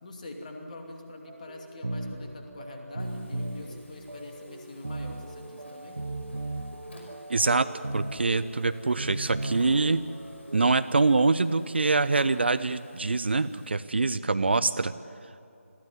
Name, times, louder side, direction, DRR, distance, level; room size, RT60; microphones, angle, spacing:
voice 1, 0.0-6.0, left 2 dB, 30° left, 2 dB, 2.6 m, -44 dB
sound 1, 1.3-10.7, right 1 dB, 70° right, 1.5 m, -37 dB
Buzz, 3.0-13.7, left 1 dB, 50° left, 5.8 m, -54 dB
voice 2, 7.3-7.7 7.9-10.0 10.5-14.9, right 3 dB, 50° right, 13 dB, 0.6 m, -24 dB
21.5 x 15.0 x 9.7 m, 2.6 s
figure-of-eight pair, 160°, 8 cm